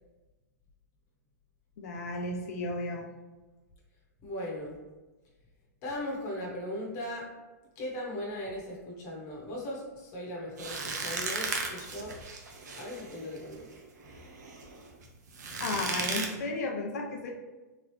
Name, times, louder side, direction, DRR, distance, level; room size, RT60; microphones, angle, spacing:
voice 1, 1.8-3.1 15.6-17.3, left 2 dB, 65° left, 2 dB, 0.8 m, -34 dB
voice 2, 4.2-4.8 5.8-7.3 7.7-12.2 12.8-13.7, left 1 dB, 30° left, -3 dB, 1.1 m, -38 dB
sound 1, 10.6-16.3, right 4 dB, 80° right, 0.8 m, -36 dB
3.8 x 3.1 x 3.1 m, 1.2 s
hypercardioid pair, 155°, 9 cm